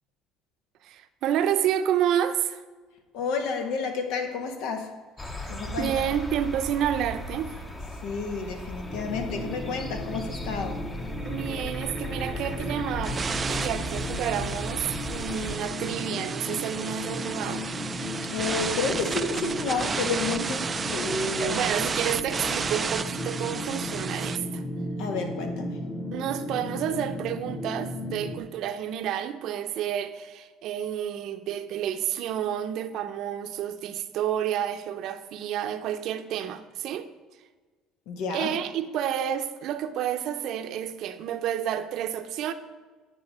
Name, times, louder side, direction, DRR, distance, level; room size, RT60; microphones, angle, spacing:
voice 1, 0.8-2.6 5.4-7.6 11.2-17.7 21.4-24.6 26.1-37.1 38.3-42.5, right 10 dB, 60° right, 0.7 m, -30 dB
voice 2, 3.1-4.9 5.5-6.0 8.0-10.9 18.3-21.7 25.0-25.8 38.1-38.5, left 4 dB, 80° left, 1.5 m, -30 dB
sound 1, 5.2-15.6, left 1 dB, 15° left, 0.9 m, -37 dB
sound 2, 8.8-28.4, left 1 dB, 40° left, 1.9 m, -35 dB
sound 3, 13.0-24.4, right 5 dB, 25° right, 0.4 m, -32 dB
9.7 x 5.1 x 6.3 m
cardioid pair, 130°, 0 cm